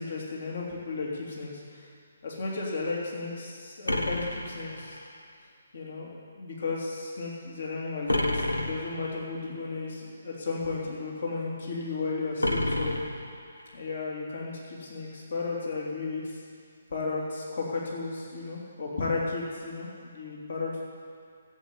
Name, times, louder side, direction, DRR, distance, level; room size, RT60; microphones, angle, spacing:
voice 1, 0.0-1.9 2.2-5.0 5.7-13.0 13.7-16.4 16.9-20.8, left 3 dB, 55° left, -3 dB, 3.1 m, -34 dB
sound 1, 3.9-5.2 8.1-9.2 12.4-13.7, left 1 dB, 85° left, 1.3 m, -30 dB
15.0 x 8.3 x 8.4 m, 2.3 s
figure-of-eight pair, 135°, 0 cm